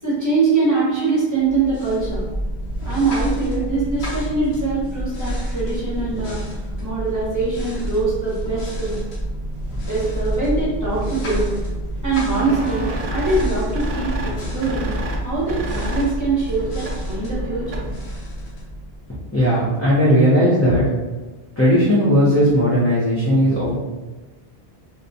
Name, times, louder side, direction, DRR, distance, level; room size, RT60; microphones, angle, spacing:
voice 1, 0.0-2.2 2.8-6.4 6.8-9.0 9.9-11.6 12.0-14.9 15.2-17.9, right 3 dB, 20° right, -9 dB, 0.9 m, -23 dB
sound 1, 1.4-19.3, equal, 90° left, 1.0 m, -28 dB
sound 2, 12.3-18.1, equal, 55° right, 0.4 m, -30 dB
voice 2, 19.3-20.8 21.6-23.7, equal, 20° left, -11 dB, 0.5 m, -16 dB
2.6 x 2.2 x 2.6 m, 1.2 s
omnidirectional pair, 1.0 m